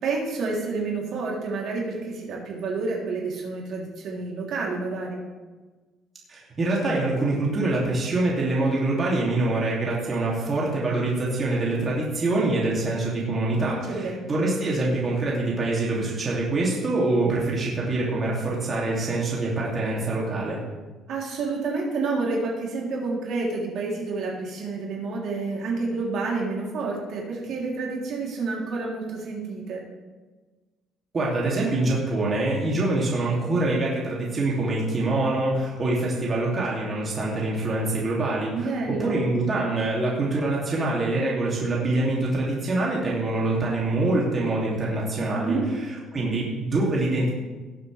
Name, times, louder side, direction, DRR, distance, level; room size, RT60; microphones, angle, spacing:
voice 1, 0.0-5.2 13.8-14.5 21.1-29.8 38.5-39.2 45.3-45.7, right 3 dB, 60° right, -3 dB, 3.2 m, -29 dB
voice 2, 6.3-20.6 31.1-38.7 39.0-45.6 46.1-47.3, right 2 dB, 30° right, -5 dB, 2.7 m, -25 dB
19.0 x 7.8 x 3.4 m, 1.3 s
cardioid pair, 145°, 0 cm